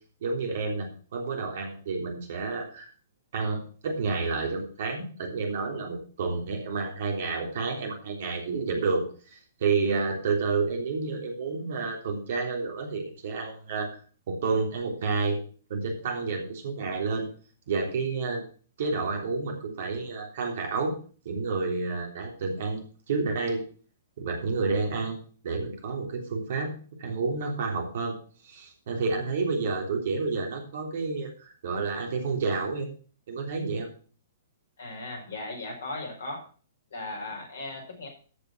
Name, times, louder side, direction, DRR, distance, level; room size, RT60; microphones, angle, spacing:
voice 1, 0.2-2.9 3.3-14.0 14.3-15.4 15.7-17.3 17.7-18.4 18.8-20.9 21.3-23.6 24.2-25.2 25.4-26.7 27.0-28.1 28.4-32.9 33.3-33.9, right 4 dB, 55° right, 1 dB, 3.3 m, -30 dB
voice 2, 34.8-36.4 36.9-38.1, left 2 dB, 60° left, 1 dB, 4.9 m, -37 dB
13.5 x 5.5 x 6.0 m, 0.40 s
figure-of-eight pair, 115°, 0 cm